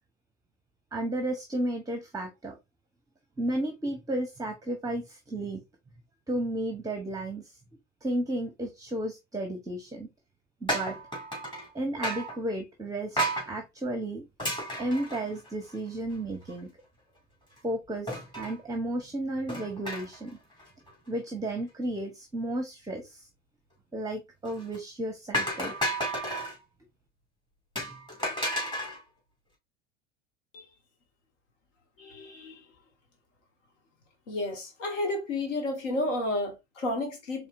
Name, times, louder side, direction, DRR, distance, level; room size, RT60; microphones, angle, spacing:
voice 1, 0.9-2.5 3.4-5.6 6.3-7.6 8.0-10.1 10.6-11.0 11.7-13.2 13.5-14.2 14.8-16.7 17.6-18.1 18.4-20.4 21.1-23.3 23.9-25.7, right 1 dB, 10° right, 0.7 m, -33 dB
sound 1, 10.7-11.7 12.0-12.4 13.2-13.5 14.4-15.8 16.1-16.2 16.5-16.6 18.1-18.6 19.5-20.3 20.6-20.9 24.4-24.8 25.3-26.6 27.8-29.0, equal, 10° left, 2.1 m, -32 dB
voice 2, 32.0-32.6 34.3-37.5, left 2 dB, 75° left, 1.3 m, -31 dB
4.2 x 3.3 x 2.5 m
figure-of-eight pair, 80°, 38 cm